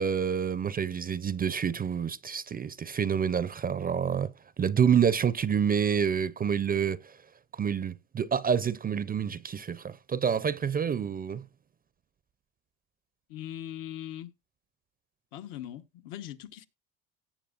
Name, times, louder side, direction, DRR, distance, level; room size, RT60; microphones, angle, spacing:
voice 1, 0.0-4.3 4.6-7.1 7.5-11.4, right 7 dB, 25° right, 0.5 m, -28 dB
voice 2, 13.3-14.3 15.3-16.7, left 12 dB, 75° left, 1.2 m, -40 dB
17.5 x 7.1 x 2.5 m
supercardioid pair, 95°, 34 cm